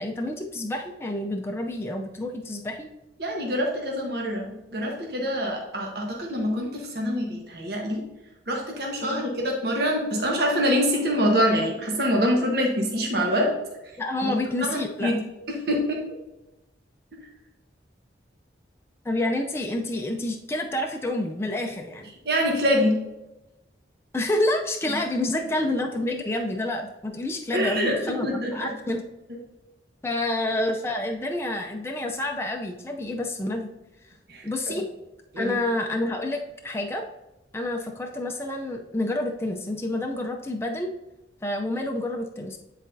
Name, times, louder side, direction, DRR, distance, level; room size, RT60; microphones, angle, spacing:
voice 1, 0.0-2.9 9.0-9.2 14.0-15.1 19.0-22.1 24.1-29.0 30.0-33.7 34.4-34.9 35.4-37.0 37.5-40.9 41.4-42.6, left 1 dB, 15° left, 2 dB, 0.4 m, -28 dB
voice 2, 3.2-8.0 8.5-13.5 14.2-14.3 14.6-15.2 15.5-16.0 22.2-23.0 24.9-25.0 27.5-28.7 29.3-29.4 34.3-34.7 35.3-35.5, equal, 60° right, 0 dB, 1.2 m, -25 dB
9.7 x 4.1 x 2.6 m, 0.98 s
head